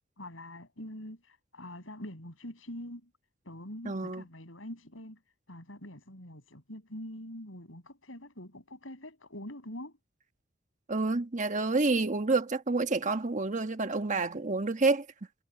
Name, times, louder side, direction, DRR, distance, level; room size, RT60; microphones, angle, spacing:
voice 1, 0.2-3.1 3.4-5.2 5.5-9.9, left 1 dB, 80° left, 7.8 m, -44 dB
voice 2, 3.8-4.2 10.9-15.1, right 3 dB, 40° right, 1.3 m, -28 dB
head